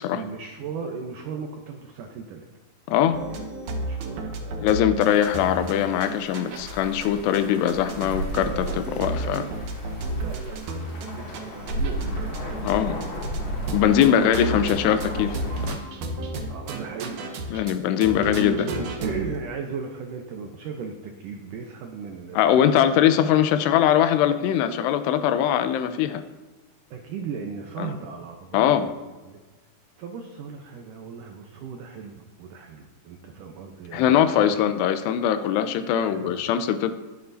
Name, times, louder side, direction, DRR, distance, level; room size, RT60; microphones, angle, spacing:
voice 1, 0.1-2.5 2.9-3.5 3.8-5.2 5.8-5.9 9.1-9.4 10.1-12.5 12.7-13.2 14.0-14.4 16.5-17.3 17.9-22.8 26.9-28.9 29.2-29.4 30.0-34.6 35.9-36.4, right 5 dB, 90° right, 3 dB, 1.8 m, -37 dB
voice 2, 2.9-3.2 4.6-9.5 12.6-13.0 13.7-15.8 17.5-18.7 22.4-26.2 27.8-27.9 28.5-28.9 33.9-36.9, left 10 dB, 85° left, 9 dB, 2.8 m, -21 dB
sound 1, 3.1-6.7 7.0-7.1 7.3-12.7 13.0-13.4 13.7-17.8 18.0-19.3, right 2 dB, 70° right, 2.0 m, -33 dB
sound 2, 5.0-15.7, equal, 40° left, 2.0 m, -34 dB
21.5 x 7.7 x 2.7 m, 1.2 s
omnidirectional pair, 4.9 m